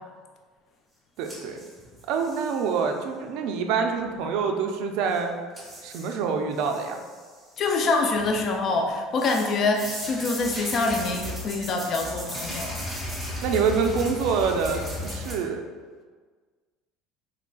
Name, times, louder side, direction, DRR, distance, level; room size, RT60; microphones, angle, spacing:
sound 1, 1.2-2.7 5.1-5.2 5.6-6.1 6.5-7.3 7.7-8.5 9.2-15.3, equal, ahead, 1.0 m, -36 dB
voice 1, 1.2-1.6 2.1-5.3 5.8-7.0 13.4-15.6, right 5 dB, 65° right, 4 dB, 0.4 m, -26 dB
voice 2, 7.6-12.9, left 3 dB, 35° left, 3 dB, 0.3 m, -25 dB
3.7 x 3.1 x 2.3 m, 1.5 s
cardioid pair, 150°, 0 cm